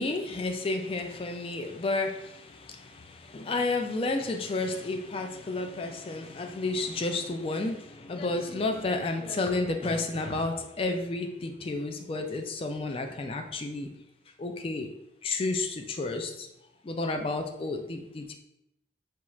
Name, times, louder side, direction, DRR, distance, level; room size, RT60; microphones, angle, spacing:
voice 1, 0.0-2.3 3.3-13.9 14.4-14.9 15.2-16.5 16.9-18.3, left 2 dB, 30° left, 5 dB, 0.3 m, -31 dB
4.4 x 2.3 x 3.0 m, 0.83 s
head